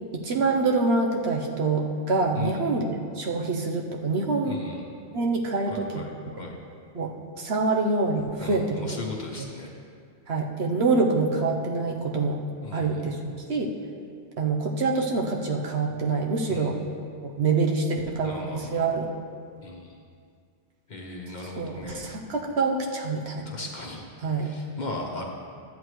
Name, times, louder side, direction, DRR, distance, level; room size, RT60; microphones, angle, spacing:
voice 1, 0.1-4.6 5.1-6.1 6.9-7.1 7.4-8.9 10.3-12.4 12.7-13.7 14.4-16.8 17.2-19.1 21.6-23.5 24.2-24.5, right 3 dB, 65° right, 0 dB, 1.1 m, -26 dB
voice 2, 2.3-2.8 4.4-4.9 5.7-6.6 8.4-9.7 12.6-13.1 16.5-16.9 18.2-18.8 19.6-20.0 20.9-22.1 23.5-24.1 24.4-25.2, left 2 dB, 40° left, 0 dB, 1.0 m, -38 dB
13.0 x 8.2 x 3.2 m, 2.2 s
omnidirectional pair, 1.2 m